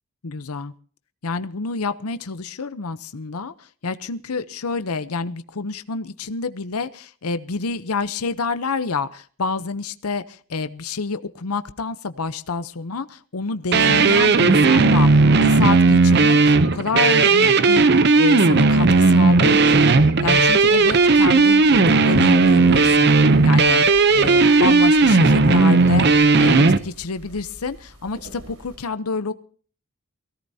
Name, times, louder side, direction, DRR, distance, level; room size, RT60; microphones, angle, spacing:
voice 1, 0.2-0.7 1.2-29.3, left 4 dB, 85° left, 12 dB, 0.8 m, -28 dB
sound 1, 13.7-26.8, right 3 dB, 50° right, 0.7 m, -15 dB
sound 2, 20.2-28.8, right 1 dB, 75° right, 4.2 m, -43 dB
23.0 x 17.0 x 2.8 m, 0.43 s
head